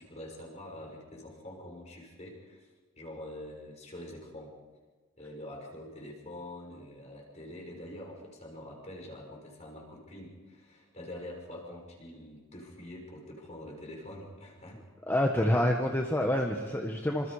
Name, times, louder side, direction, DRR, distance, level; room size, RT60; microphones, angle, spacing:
voice 1, 0.0-2.7 3.0-4.6 5.2-14.8 15.1-15.2, left 1 dB, 35° left, 0 dB, 6.0 m, -45 dB
voice 2, 15.1-17.3, left 1 dB, 10° left, 2 dB, 1.4 m, -27 dB
27.0 x 26.5 x 5.0 m, 1.4 s
head